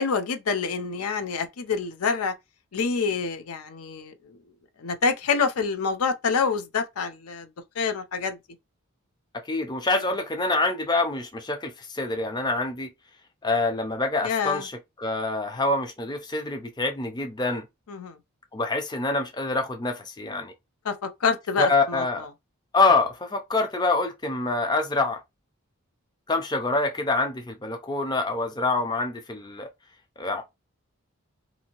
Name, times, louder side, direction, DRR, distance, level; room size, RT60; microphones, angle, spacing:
voice 1, 0.0-2.3 2.7-4.1 4.8-7.5 7.8-8.4 14.2-14.7 17.9-18.2 20.8-22.0, left 5 dB, 85° left, 0.5 m, -26 dB
voice 2, 9.5-12.9 13.4-17.7 18.5-20.5 21.6-22.3 22.7-25.2 26.3-29.7 30.2-30.4, left 3 dB, 20° left, 0.4 m, -26 dB
2.7 x 2.5 x 2.9 m
head